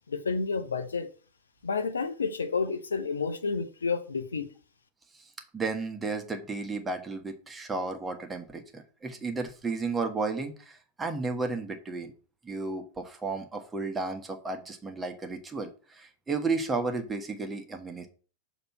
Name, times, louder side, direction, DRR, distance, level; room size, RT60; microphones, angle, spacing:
voice 1, 0.1-1.1 1.6-4.5, left 4 dB, 70° left, 0.7 m, -30 dB
voice 2, 5.5-12.1 12.4-18.1, right 3 dB, 15° right, 1.2 m, -33 dB
6.7 x 3.0 x 5.7 m
figure-of-eight pair, 90°, 0 cm